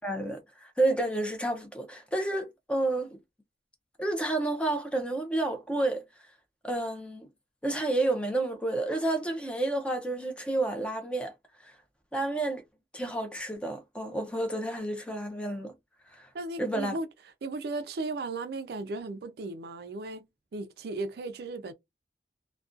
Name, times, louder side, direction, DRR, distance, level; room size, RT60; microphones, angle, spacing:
voice 1, 0.0-3.2 4.0-6.3 6.6-7.3 7.6-11.8 12.1-12.6 12.9-15.7 16.1-16.3 16.6-17.0, right 2 dB, 5° left, 0.4 m, -30 dB
voice 2, 16.3-17.1 17.4-20.3 20.5-21.7, right 3 dB, 60° right, 0.4 m, -36 dB
2.4 x 2.2 x 2.5 m
head